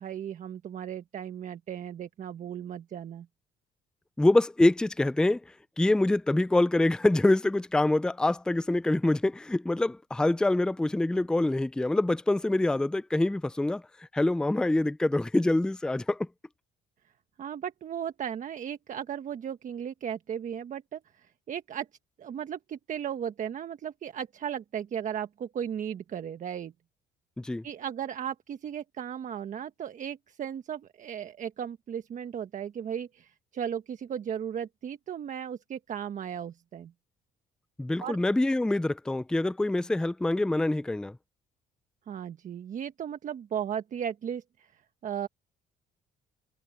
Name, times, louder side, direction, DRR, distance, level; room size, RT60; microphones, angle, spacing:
voice 1, 0.0-3.3 17.4-21.0 21.5-21.9 22.2-26.7 27.6-36.9 38.0-38.2 42.1-44.7 45.0-45.3, right 9 dB, 50° right, 1.3 m, -36 dB
voice 2, 4.2-5.4 5.8-13.8 14.1-16.3 27.4-27.6 37.8-41.2, left 2 dB, 5° left, 0.4 m, -25 dB
cardioid pair, 110°, 17 cm